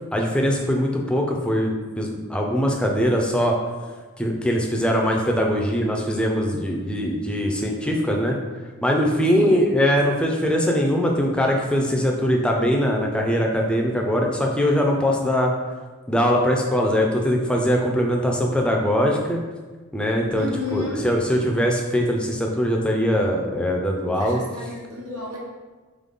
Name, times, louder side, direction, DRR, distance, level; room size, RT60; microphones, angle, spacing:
voice 1, 0.1-3.6 4.2-8.4 8.8-15.5 16.1-19.4 19.9-20.5 20.7-24.4, equal, 5° left, 0 dB, 0.4 m, -21 dB
voice 2, 20.3-21.1 24.2-25.4, left 2 dB, 90° right, -5 dB, 1.3 m, -32 dB
3.8 x 3.7 x 3.6 m, 1.4 s
head